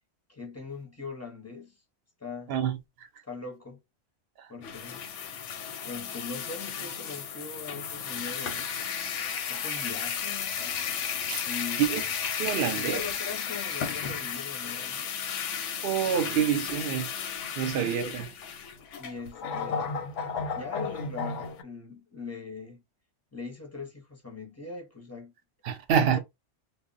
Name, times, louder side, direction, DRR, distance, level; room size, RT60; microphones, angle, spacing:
voice 1, 0.3-1.8 2.2-2.5 3.3-3.8 4.5-5.0 5.8-8.7 9.5-10.8 11.5-12.1 12.6-15.1 16.0-16.4 17.7-18.2 19.0-19.9 20.5-22.8 23.3-25.3 26.0-26.2, left 4 dB, 20° left, 0.5 m, -41 dB
sound 1, 4.6-21.6, left 7 dB, 85° left, 0.9 m, -34 dB
voice 2, 12.4-13.0 15.8-17.1 17.6-18.2 25.6-26.2, right 8 dB, 65° right, 0.7 m, -27 dB
2.1 x 2.0 x 3.7 m
omnidirectional pair, 1.2 m